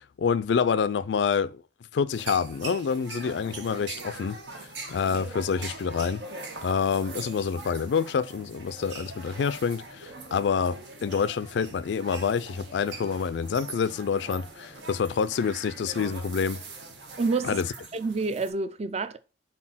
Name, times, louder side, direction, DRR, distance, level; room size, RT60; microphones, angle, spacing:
voice 1, 0.2-1.5 1.9-4.3 4.9-6.2 6.6-9.8 10.3-10.8 11.0-14.4 14.9-16.6 17.4-17.7, left 6 dB, 75° left, 0.4 m, -27 dB
sound 1, 2.1-18.5, right 3 dB, 80° right, 1.5 m, -42 dB
voice 2, 17.2-17.6 17.9-19.2, right 3 dB, 35° right, 0.5 m, -28 dB
4.3 x 4.2 x 5.7 m
head